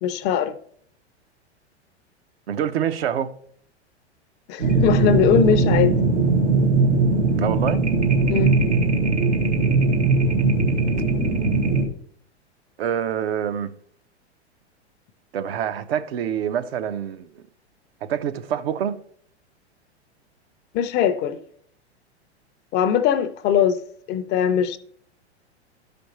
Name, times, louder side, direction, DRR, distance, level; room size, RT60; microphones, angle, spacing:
voice 1, 0.0-0.6 4.5-6.0 8.3-8.6 20.7-21.4 22.7-23.8 24.1-24.8, left 9 dB, 30° left, 0.5 m, -21 dB
voice 2, 2.5-3.3 7.3-7.8 12.8-13.7 15.3-17.4 18.0-18.9, right 9 dB, 60° right, 0.7 m, -26 dB
sound 1, 4.6-11.8, right 3 dB, 85° right, 1.3 m, -20 dB
12.0 x 5.1 x 3.1 m
figure-of-eight pair, 100°, 34 cm